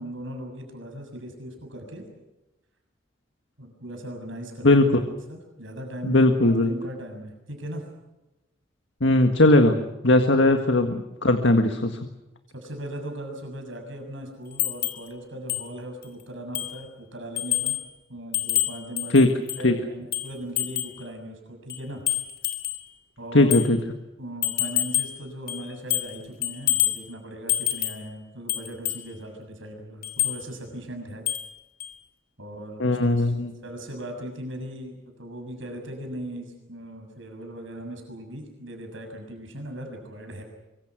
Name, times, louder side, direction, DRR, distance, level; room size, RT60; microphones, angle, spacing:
voice 1, 0.0-2.0 3.6-4.8 5.3-7.9 12.5-17.8 18.1-19.3 19.6-22.1 23.2-23.5 24.2-31.2 32.4-33.3 33.6-40.4, right 1 dB, 75° right, 3 dB, 6.9 m, -38 dB
voice 2, 6.0-6.7 9.0-12.0 19.1-19.3 19.6-19.7 23.3-23.8 32.8-33.5, left 2 dB, 70° left, 6 dB, 1.8 m, -19 dB
sound 1, 14.6-15.1 15.5-15.7 16.0-16.1 16.5-16.8 17.4-17.9 18.3-19.7 20.1-21.0 21.7-22.8 23.5-23.7 24.4-25.2 25.5-26.2 26.4-27.0 27.5-28.1 28.5-29.0 30.0-30.4 31.3-31.5 31.8-31.9, left 13 dB, 50° left, 2.8 m, -27 dB
25.0 x 25.0 x 6.2 m, 1.0 s
head